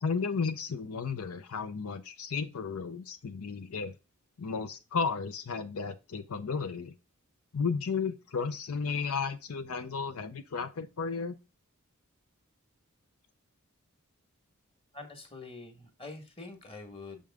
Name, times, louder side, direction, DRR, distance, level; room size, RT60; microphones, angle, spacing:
voice 1, 0.0-3.9 4.4-6.9 7.5-11.4, left 5 dB, 75° left, 9 dB, 0.6 m, -33 dB
voice 2, 14.9-17.2, left 3 dB, 25° left, 5 dB, 1.6 m, -45 dB
6.6 x 5.2 x 3.6 m, 0.29 s
head